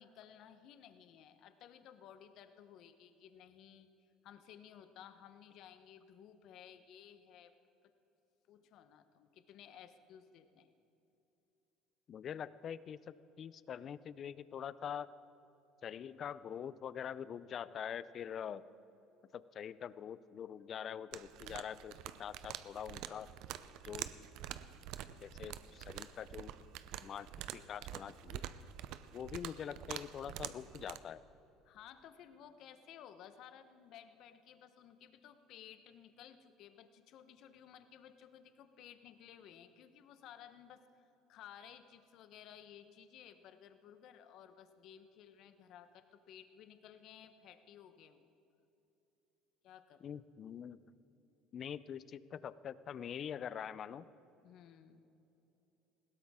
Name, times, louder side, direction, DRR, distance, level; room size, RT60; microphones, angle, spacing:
voice 1, 0.0-3.9 4.2-7.6 7.8-7.9 8.5-10.7 29.5-29.6 31.6-40.8 41.3-48.3 49.6-50.1 54.4-55.0, left 9 dB, 60° left, 10 dB, 1.0 m, -57 dB
voice 2, 12.1-15.1 15.8-18.8 19.3-23.3 23.8-24.1 25.2-26.5 27.0-28.5 29.1-31.2 50.0-50.8 51.5-54.1, left 8 dB, 45° left, 17 dB, 0.5 m, -44 dB
sound 1, 21.1-31.0, right 12 dB, 70° right, 0.6 m, -47 dB
20.5 x 16.5 x 3.7 m, 2.9 s
supercardioid pair, 90°, 0 cm